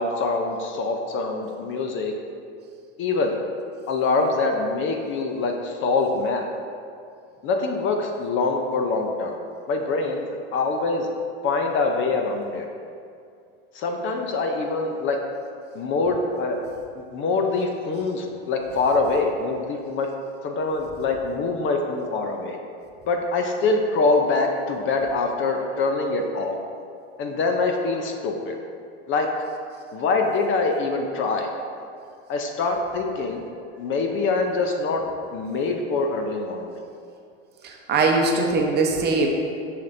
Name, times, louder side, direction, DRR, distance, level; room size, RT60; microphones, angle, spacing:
voice 1, 0.0-2.1 3.0-3.4 3.9-6.4 7.4-9.4 9.7-11.1 11.4-12.6 13.7-15.2 15.7-16.6 17.0-20.1 20.4-22.6 23.1-26.6 27.2-28.6 29.1-29.3 29.9-31.5 32.3-33.5 33.8-35.0 35.3-36.8, left 3 dB, 35° left, 3 dB, 0.6 m, -24 dB
voice 2, 37.6-39.3, right 3 dB, 30° right, 1 dB, 0.8 m, -21 dB
7.2 x 5.9 x 2.6 m, 2.4 s
supercardioid pair, 115°, 34 cm